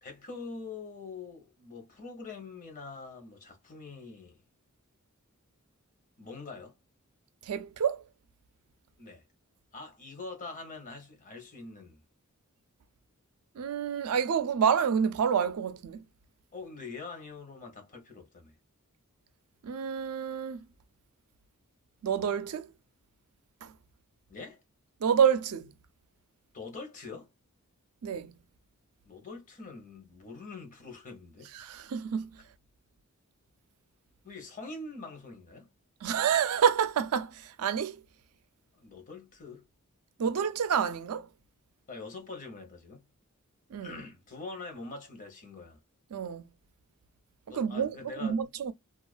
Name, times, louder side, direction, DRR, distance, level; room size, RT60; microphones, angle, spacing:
voice 1, 0.0-4.4 6.2-6.7 9.0-9.2 9.7-12.0 16.5-18.5 24.3-24.6 26.5-27.3 29.1-31.5 34.2-35.7 38.7-39.7 41.9-43.0 43.8-45.8 47.5-48.4, left 3 dB, 35° left, 0.8 m, -44 dB
voice 2, 7.5-8.0 13.6-16.0 19.6-20.6 22.0-22.7 23.6-23.7 25.0-25.7 28.0-28.3 31.5-32.3 36.0-38.0 40.2-41.3 43.7-44.0 46.1-46.4 47.5-48.7, right 7 dB, 90° right, 0.4 m, -28 dB
2.4 x 2.2 x 2.3 m
head